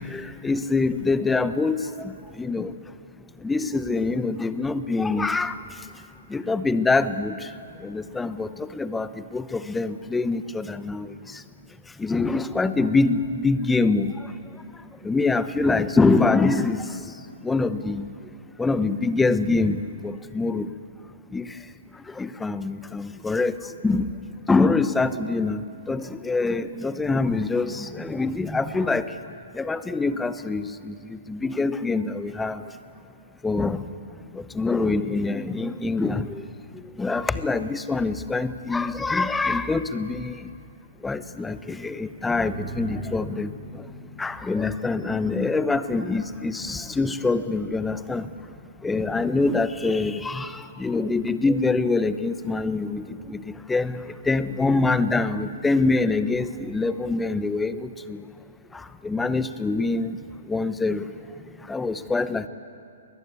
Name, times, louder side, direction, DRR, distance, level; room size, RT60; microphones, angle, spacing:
voice 1, 0.1-2.1 2.4-2.7 3.4-5.5 6.3-7.3 7.8-8.5 8.8-9.1 9.3-11.1 12.0-14.1 15.0-16.8 17.4-18.1 18.6-19.8 20.0-20.7 21.3-21.4 22.2-23.5 23.8-24.1 24.5-29.1 29.6-30.9 31.3-32.6 33.4-33.8 34.6-36.2 37.0-40.4 41.0-43.5 44.2-48.2 48.8-50.5 50.8-53.0 53.3-53.4 53.7-54.0 54.3-57.8 58.1-58.2 59.0-60.1 60.5-61.0 61.7-62.5, left 3 dB, 10° left, 13 dB, 0.8 m, -24 dB
sound 1, 42.5-53.5, right 1 dB, 20° right, 3.3 m, -44 dB
21.5 x 19.5 x 8.4 m, 2.5 s
hypercardioid pair, 135°, 0 cm